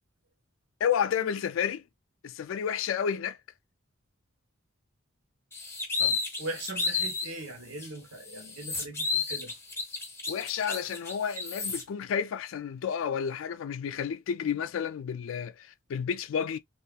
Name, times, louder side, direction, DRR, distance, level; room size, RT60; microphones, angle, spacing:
voice 1, 0.8-1.8 2.2-3.4 10.3-16.6, left 7 dB, 70° left, 0.3 m, -31 dB
sound 1, 5.5-7.3 7.8-7.9 8.3-11.8, left 4 dB, 10° left, 0.6 m, -32 dB
voice 2, 6.0-9.5, right 2 dB, 90° right, 0.9 m, -40 dB
2.8 x 2.4 x 2.2 m
head